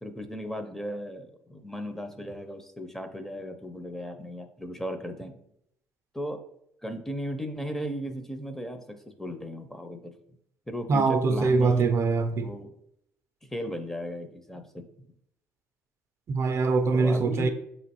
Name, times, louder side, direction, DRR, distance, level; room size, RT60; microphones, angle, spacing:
voice 1, 0.0-5.3 6.1-6.4 6.8-10.1 10.7-11.9 12.3-12.7 13.4-15.1 16.9-17.5, equal, 5° left, 0.5 m, -36 dB
voice 2, 10.9-12.5 16.3-17.5, right 4 dB, 50° right, 0.4 m, -23 dB
4.9 x 3.0 x 2.9 m
supercardioid pair, 70°, 6 cm